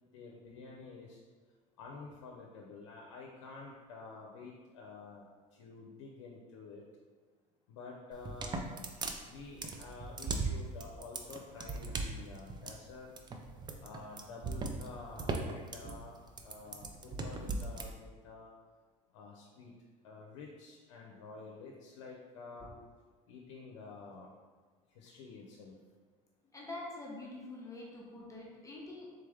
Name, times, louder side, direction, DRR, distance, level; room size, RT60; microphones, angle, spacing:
voice 1, 0.1-1.2 1.8-6.8 7.7-8.7 9.2-13.1 13.8-16.1 16.4-18.5 19.1-19.7 20.0-22.7 23.3-24.3 24.9-25.8, left 4 dB, 90° left, -1 dB, 0.5 m, -49 dB
sound 1, 8.1-17.9, right 3 dB, 25° right, 0.5 m, -38 dB
voice 2, 26.5-29.1, left 2 dB, 20° left, -4 dB, 0.9 m, -45 dB
3.7 x 3.3 x 3.4 m, 1.4 s
supercardioid pair, 95°, 16 cm